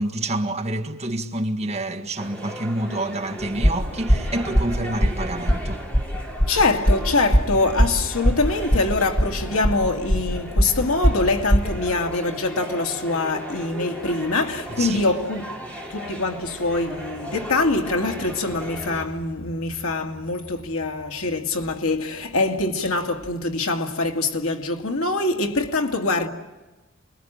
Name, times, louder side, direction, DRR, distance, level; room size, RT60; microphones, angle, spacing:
voice 1, 0.0-5.8 14.8-15.0, right 1 dB, 30° right, 1.8 m, -28 dB
sound 1, 2.2-19.1, equal, 5° left, 3.8 m, -37 dB
sound 2, 3.4-11.8, equal, 35° left, 2.2 m, -21 dB
voice 2, 6.5-15.6 15.9-26.3, left 3 dB, 85° left, 2.2 m, -24 dB
29.0 x 21.5 x 8.8 m
head